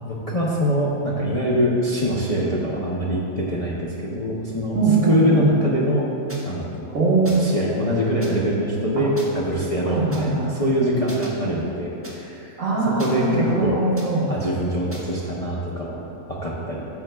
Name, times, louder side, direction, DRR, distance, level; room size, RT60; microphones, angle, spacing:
voice 1, 0.0-4.8 5.1-6.1 6.4-6.9 7.2-12.6 13.0-13.8 14.3-16.9, equal, 35° left, -6 dB, 0.7 m, -24 dB
voice 2, 4.7-5.5 6.9-7.5 9.0-9.1 9.9-10.5 12.6-14.3, right 3 dB, 65° right, -5 dB, 1.6 m, -21 dB
sound 1, 6.3-6.4 7.2-7.6 8.2-8.3 9.2-9.3 10.1-10.2 11.1-11.3 12.0-12.1 13.0-13.5 14.0-14.1 14.9-15.1, equal, 10° right, 0.9 m, -39 dB
10.5 x 7.6 x 2.3 m, 2.9 s
omnidirectional pair, 1.5 m